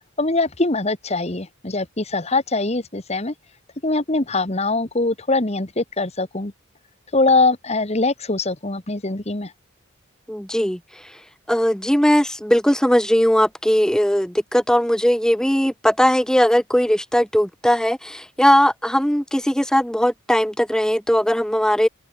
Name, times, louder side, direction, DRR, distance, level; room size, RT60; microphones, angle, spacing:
voice 1, 0.2-3.3 3.8-6.5 7.1-9.5, left 3 dB, 30° left, 1.5 m, -22 dB
voice 2, 10.3-10.8 11.5-21.9, equal, 5° left, 1.1 m, -19 dB
open air
head